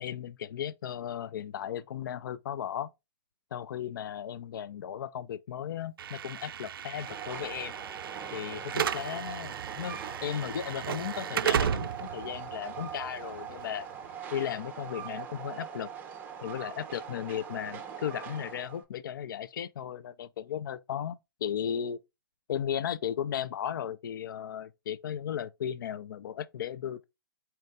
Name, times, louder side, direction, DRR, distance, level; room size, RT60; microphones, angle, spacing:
voice 1, 0.0-2.9 3.5-7.7 8.3-13.9 14.3-15.9 16.4-22.0 22.5-27.0, left 9 dB, 65° left, 0.4 m, -36 dB
Slam / Alarm, 6.0-14.1, right 8 dB, 70° right, 0.4 m, -35 dB
Train, 6.9-18.8, right 8 dB, 15° right, 0.6 m, -42 dB
4.4 x 2.6 x 3.3 m
hypercardioid pair, 145°, 12 cm